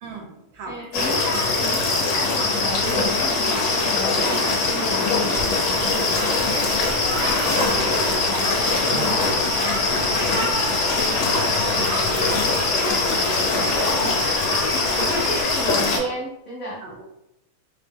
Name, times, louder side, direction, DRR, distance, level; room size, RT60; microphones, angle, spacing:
voice 1, 0.0-1.1 1.9-2.1 9.0-9.5 10.6-12.6 15.0-15.2 16.8-17.0, right 2 dB, 75° right, 1 dB, 1.3 m, -37 dB
voice 2, 0.7-9.9 12.8-14.4 14.7-16.8, equal, 90° left, -3 dB, 0.7 m, -33 dB
sound 1, 0.9-16.0, left 3 dB, 60° left, 1.2 m, -22 dB
sound 2, 5.7-15.4, equal, 30° right, 0.8 m, -31 dB
4.6 x 2.0 x 3.4 m, 0.87 s
omnidirectional pair, 2.3 m